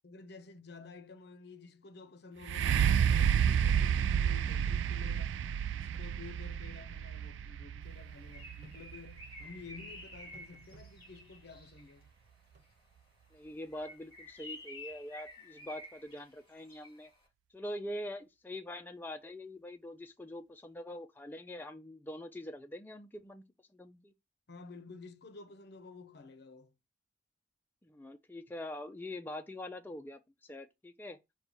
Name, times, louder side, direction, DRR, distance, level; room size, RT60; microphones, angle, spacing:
voice 1, 0.0-5.5 5.7-12.1 24.5-26.7, left 4 dB, 60° left, 0.6 m, -51 dB
sound 1, 2.4-10.2 10.8-10.9, right 8 dB, 85° right, 0.3 m, -30 dB
sound 2, 4.0-4.2 4.4-4.5 5.9-6.1 8.6-8.8 10.3-10.9 12.5-12.7, right 1 dB, 40° right, 1.2 m, -58 dB
Bird, 7.9-12.0 13.6-17.1, left 2 dB, 30° left, 2.4 m, -51 dB
voice 2, 13.3-17.1 17.5-23.4 23.7-24.1 27.8-31.2, left 1 dB, 10° left, 0.3 m, -44 dB
5.3 x 2.2 x 4.5 m
head